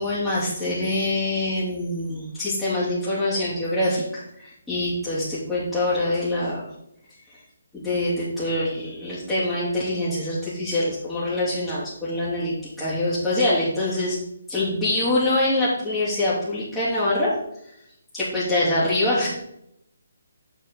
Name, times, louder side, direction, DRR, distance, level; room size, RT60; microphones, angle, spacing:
voice 1, 0.0-6.6 7.7-14.2 14.5-17.3 18.1-19.3, left 1 dB, 5° left, -14 dB, 2.9 m, -24 dB
7.5 x 7.3 x 4.0 m, 0.76 s
figure-of-eight pair, 140°, 0 cm